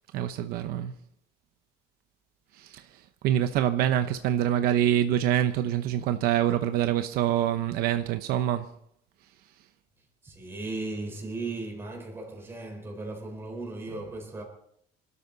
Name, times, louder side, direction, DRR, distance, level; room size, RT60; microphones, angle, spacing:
voice 1, 0.1-0.9 2.5-2.8 3.2-8.7, right 11 dB, 65° right, 0.9 m, -25 dB
voice 2, 10.0-14.4, right 2 dB, 15° right, 4.4 m, -37 dB
26.0 x 12.5 x 4.0 m
cardioid pair, 175°, 16 cm